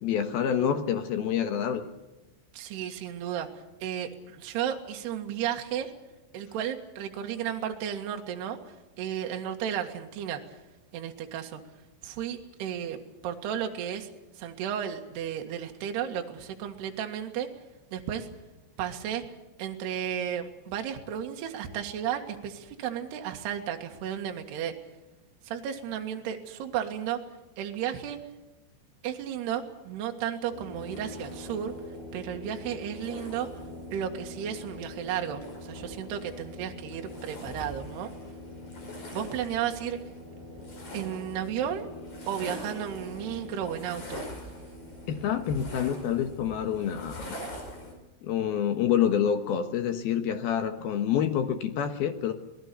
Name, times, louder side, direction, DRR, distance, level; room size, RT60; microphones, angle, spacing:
voice 1, 0.0-1.8 45.1-47.4 48.2-52.3, left 9 dB, 65° left, 8 dB, 2.6 m, -27 dB
voice 2, 2.5-5.9 6.3-10.6 10.9-11.6 12.0-14.1 14.4-17.5 17.9-18.3 18.8-19.3 19.6-24.8 25.4-27.2 27.6-28.2 29.0-31.7 32.1-33.6 33.9-38.1 39.1-40.0 40.9-41.9 42.3-44.2 50.8-50.9, right 9 dB, 65° right, 3 dB, 3.5 m, -33 dB
sound 1, 30.5-47.9, left 1 dB, 40° left, 6.4 m, -42 dB
26.0 x 19.0 x 6.9 m, 1.1 s
omnidirectional pair, 5.7 m